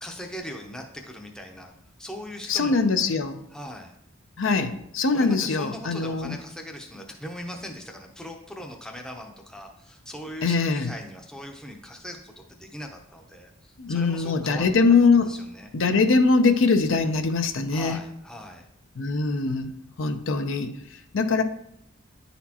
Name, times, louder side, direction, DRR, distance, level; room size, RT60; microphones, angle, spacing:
voice 1, 0.0-1.7 2.0-2.8 3.5-3.9 5.1-14.7 15.3-15.7 17.7-18.7, equal, 5° left, 2 dB, 0.6 m, -39 dB
voice 2, 2.5-3.4 4.4-6.3 10.4-10.9 13.8-15.3 15.7-18.0 19.0-20.7 21.1-21.4, left 4 dB, 65° left, 8 dB, 0.5 m, -22 dB
10.0 x 4.2 x 2.9 m, 0.72 s
head